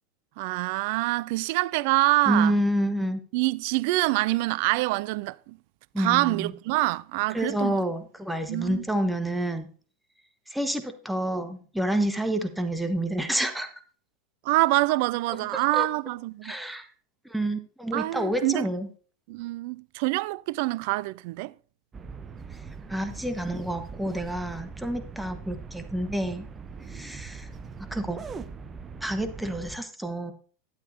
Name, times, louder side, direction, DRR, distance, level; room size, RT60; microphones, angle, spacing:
voice 1, 0.4-2.6 3.3-5.6 6.0-7.9 8.5-8.8 14.4-16.5 17.9-18.7 19.3-21.5, right 21 dB, 45° right, 0.4 m, -26 dB
voice 2, 2.3-3.2 5.9-6.5 7.3-9.7 10.5-13.7 15.5-15.9 16.4-16.9 17.2-18.9 22.9-26.4 26.9-27.5 27.9-28.2 29.0-30.3, right 1 dB, ahead, 1.3 m, -28 dB
sound 1, 21.9-29.8, right 5 dB, 20° right, 0.8 m, -41 dB
12.0 x 10.5 x 2.7 m
figure-of-eight pair, 90°, 0 cm